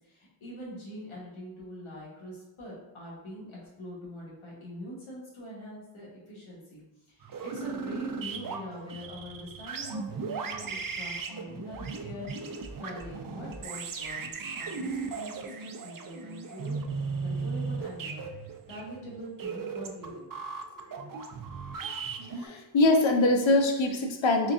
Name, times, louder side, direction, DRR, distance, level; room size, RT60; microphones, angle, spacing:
voice 1, 0.0-16.8 17.2-20.4 20.6-21.1, equal, 90° left, -4 dB, 1.3 m, -44 dB
sound 1, 7.2-22.5, right 4 dB, 45° right, 0.5 m, -37 dB
voice 2, 22.4-24.5, left 2 dB, 70° left, 4 dB, 0.7 m, -23 dB
3.9 x 3.3 x 2.5 m, 0.96 s
cardioid pair, 50°, 47 cm